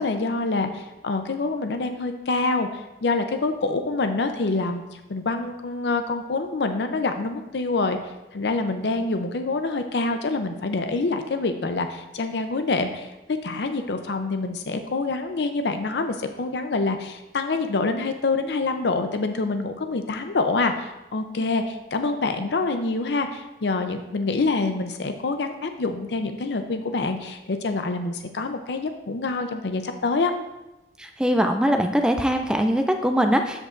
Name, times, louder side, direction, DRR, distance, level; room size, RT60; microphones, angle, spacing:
voice 1, 0.0-8.0 8.3-30.3, left 3 dB, 80° left, 7 dB, 0.6 m, -26 dB
voice 2, 31.0-33.6, equal, 5° right, 5 dB, 0.3 m, -22 dB
13.5 x 5.3 x 2.5 m, 0.98 s
head